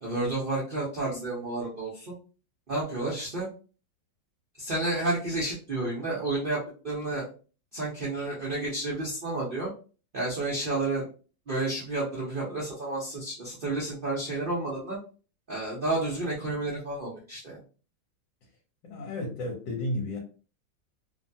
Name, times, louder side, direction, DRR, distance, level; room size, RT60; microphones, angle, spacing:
voice 1, 0.0-2.1 2.7-3.5 4.6-7.3 7.7-9.7 10.1-11.1 11.5-15.0 15.5-17.6, right 2 dB, 70° right, 0.5 m, -31 dB
voice 2, 18.8-20.2, left 1 dB, 70° left, 1.4 m, -32 dB
3.1 x 2.2 x 2.6 m
omnidirectional pair, 2.1 m